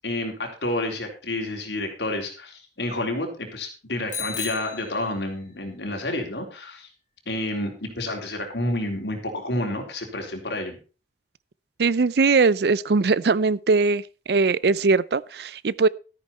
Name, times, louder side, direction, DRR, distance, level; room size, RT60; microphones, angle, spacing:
voice 1, 0.0-6.9 7.3-10.8, left 1 dB, 80° left, 3.8 m, -29 dB
Bicycle bell, 4.1-5.7, left 6 dB, 45° left, 3.0 m, -35 dB
voice 2, 11.8-15.9, right 4 dB, 65° right, 0.5 m, -21 dB
13.5 x 9.9 x 4.2 m
head